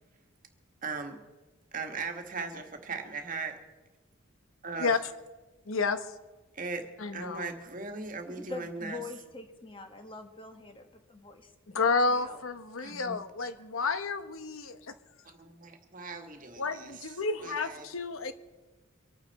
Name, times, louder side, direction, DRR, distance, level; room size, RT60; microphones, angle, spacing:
voice 1, 0.8-1.2 1.7-3.5 4.6-5.0 6.5-6.8 7.1-9.0 12.8-13.2 15.3-17.1 17.4-17.9, right 4 dB, 40° right, 5 dB, 1.6 m, -38 dB
voice 2, 5.7-6.1 7.0-7.5 11.7-14.9 16.6-18.3, left 4 dB, 75° left, 10 dB, 1.0 m, -30 dB
voice 3, 8.3-11.5 12.1-12.4, left 3 dB, 25° left, 5 dB, 1.4 m, -44 dB
24.5 x 9.1 x 4.2 m, 1.2 s
head